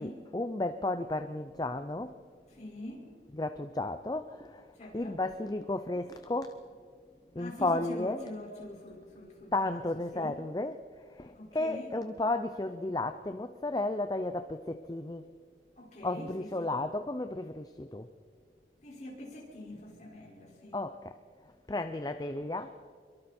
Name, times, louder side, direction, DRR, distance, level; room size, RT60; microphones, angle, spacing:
voice 1, 0.0-2.2 3.3-4.7 4.9-6.6 7.3-8.2 9.5-15.3 16.0-18.1 20.7-21.2 21.4-22.8, left 2 dB, 20° left, 9 dB, 0.5 m, -33 dB
voice 2, 2.5-3.0 4.7-5.1 7.4-9.8 10.1-10.3 11.3-11.9 15.8-16.7 18.8-20.8, left 1 dB, 40° left, -2 dB, 5.2 m, -44 dB
26.0 x 23.0 x 4.3 m, 2.1 s
head